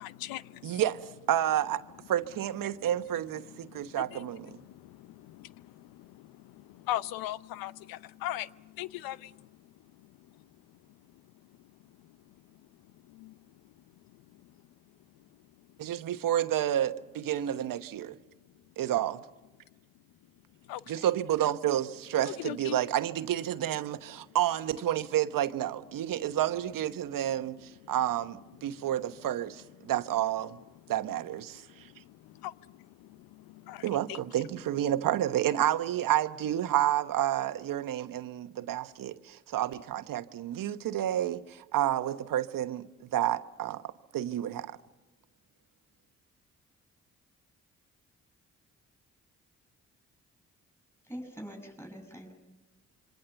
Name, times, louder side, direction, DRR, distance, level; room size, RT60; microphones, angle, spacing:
voice 1, 0.0-0.8 2.7-2.9 3.6-10.4 12.0-12.3 13.1-13.4 14.1-14.5 20.7-21.0 22.3-22.8 27.8-27.9 31.7-34.2, left 14 dB, 80° left, 0.8 m, -41 dB
voice 2, 0.6-1.8 2.1-4.5 15.8-18.2 18.8-19.2 20.9-30.6 30.9-31.9 33.8-43.8 44.1-44.8, right 12 dB, 65° right, 1.2 m, -30 dB
voice 3, 51.1-52.3, equal, 5° left, 6.9 m, -43 dB
26.5 x 24.0 x 7.0 m
hypercardioid pair, 50°, 35 cm